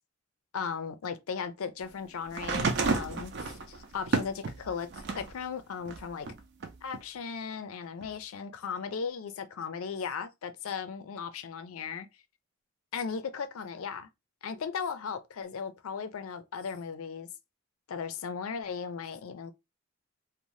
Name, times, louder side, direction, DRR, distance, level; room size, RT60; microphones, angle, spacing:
voice 1, 0.5-6.3 6.8-12.1 12.9-14.1 14.4-17.3 17.9-19.5, left 6 dB, 75° left, 0.4 m, -37 dB
sound 1, 2.3-5.4 5.9-7.0 8.0-8.1, right 4 dB, 55° right, 0.5 m, -31 dB
2.6 x 2.1 x 3.0 m
head